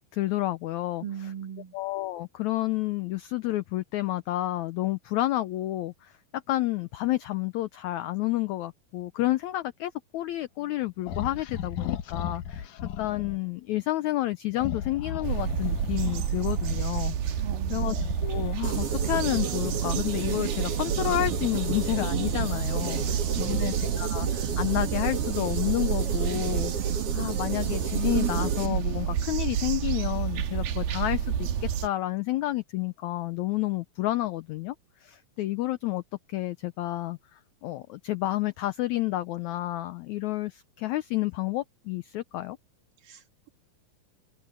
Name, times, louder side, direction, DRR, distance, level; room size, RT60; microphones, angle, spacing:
voice 1, 0.1-1.3 1.7-17.4 17.7-17.9 18.2-26.7 27.1-34.7 35.0-36.0 36.3-42.6, left 16 dB, 80° left, 1.6 m, -30 dB
voice 2, 1.0-1.7 17.4-17.9 23.0-23.7 43.0-43.5, right 9 dB, 70° right, 3.6 m, -40 dB
sound 1, 11.1-13.4 14.5-16.9 17.9-20.2 20.7-23.1, left 8 dB, 65° left, 2.7 m, -37 dB
sound 2, 15.2-31.9, right 9 dB, 90° right, 3.4 m, -29 dB
sound 3, 18.6-28.7, right 5 dB, 45° right, 2.7 m, -34 dB
open air
omnidirectional pair, 4.1 m